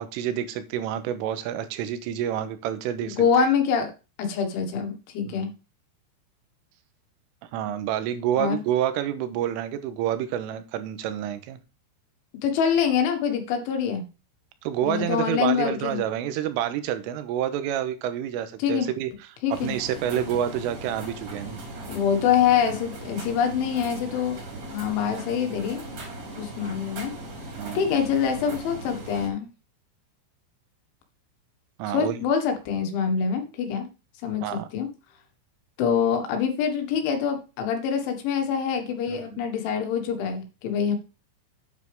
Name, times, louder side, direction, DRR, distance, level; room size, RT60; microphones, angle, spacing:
voice 1, 0.0-3.5 5.3-5.5 7.5-11.6 14.6-19.1 19.5-21.6 24.5-24.6 27.6-27.9 31.8-32.2 34.4-34.7 39.1-39.3, right 10 dB, 90° right, 11 dB, 3.5 m, -28 dB
voice 2, 3.0-3.9 4.2-5.5 8.4-8.6 12.4-14.1 14.8-16.0 18.6-18.9 19.4-19.7 21.9-24.4 24.7-25.8 26.4-27.1 27.8-29.5 31.9-33.9 34.2-34.9 35.8-41.0, left 7 dB, 70° left, 5 dB, 4.0 m, -25 dB
sound 1, 19.5-29.3, right 2 dB, 40° right, 3.6 m, -38 dB
9.3 x 8.4 x 3.5 m, 0.31 s
omnidirectional pair, 5.8 m